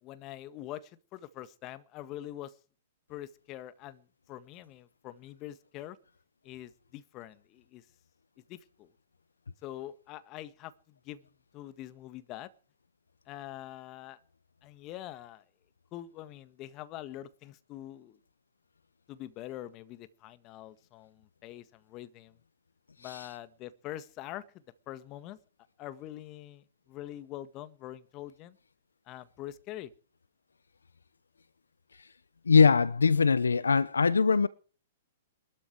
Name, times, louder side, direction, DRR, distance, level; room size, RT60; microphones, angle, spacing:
voice 1, 0.0-2.6 3.1-6.0 6.4-7.9 8.5-8.9 9.6-11.3 11.5-12.5 13.3-14.2 14.6-15.4 15.9-18.2 19.1-22.4 23.0-24.5 24.9-25.4 25.8-28.6 29.1-29.9, left 13 dB, 35° left, 1.7 m, -44 dB
voice 2, 32.5-34.5, left 5 dB, 90° left, 0.8 m, -22 dB
22.0 x 13.0 x 4.7 m
hypercardioid pair, 120°, 0 cm